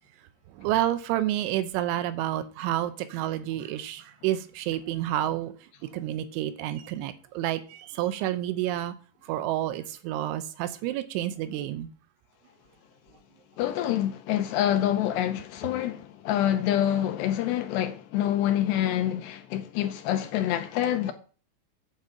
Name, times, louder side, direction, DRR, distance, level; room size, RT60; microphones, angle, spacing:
voice 1, 0.6-5.5 5.9-8.9 9.3-11.9, right 13 dB, 80° right, 3.1 m, -29 dB
voice 2, 13.6-21.1, left 11 dB, 80° left, 2.6 m, -26 dB
9.0 x 5.4 x 7.5 m
omnidirectional pair, 5.5 m